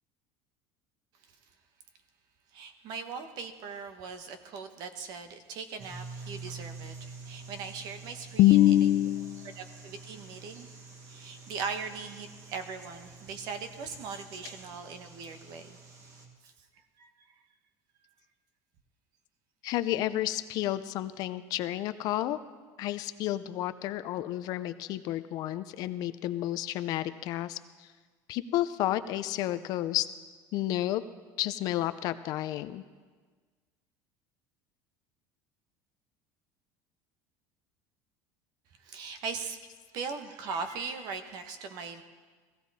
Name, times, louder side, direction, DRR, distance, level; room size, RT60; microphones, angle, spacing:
voice 1, 2.5-8.6 9.6-10.7 11.1-15.8 16.4-16.5 17.0-17.1 38.8-39.6 39.9-42.0, right 5 dB, 55° right, 8 dB, 1.2 m, -39 dB
sound 1, 5.8-16.3, right 4 dB, 40° right, 1.7 m, -47 dB
voice 2, 8.4-9.6 19.6-22.4 22.8-27.9 28.3-30.1 30.5-31.0 31.4-32.8, left 14 dB, 50° left, 13 dB, 0.6 m, -29 dB
16.5 x 15.5 x 4.1 m, 1.4 s
cardioid pair, 155°, 8 cm